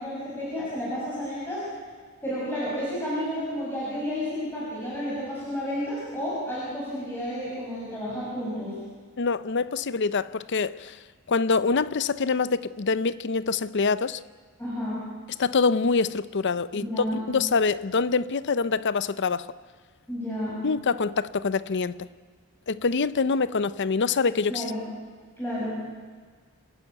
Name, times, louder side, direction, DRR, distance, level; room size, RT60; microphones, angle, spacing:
voice 1, 0.0-1.6 2.2-8.7 14.6-15.0 16.7-17.2 20.1-20.6 24.5-24.8 25.4-25.8, equal, 10° left, -8 dB, 6.5 m, -31 dB
voice 2, 9.2-11.0 11.3-14.2 15.4-19.5 20.6-22.0 22.7-24.7, left 4 dB, 55° left, 16 dB, 0.6 m, -25 dB
26.0 x 11.5 x 9.3 m, 1.5 s
head